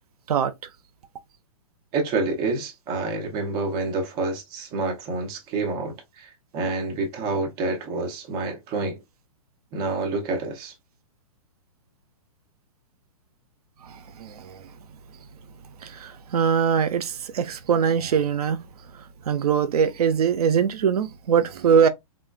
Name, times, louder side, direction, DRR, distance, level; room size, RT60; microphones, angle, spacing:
voice 1, 1.9-9.0 9.7-10.7, right 3 dB, 20° right, 0.7 m, -28 dB
voice 2, 13.8-14.6 15.8-18.6 19.3-21.9, right 7 dB, 85° right, 0.5 m, -22 dB
3.6 x 2.1 x 2.4 m
hypercardioid pair, 160°, 19 cm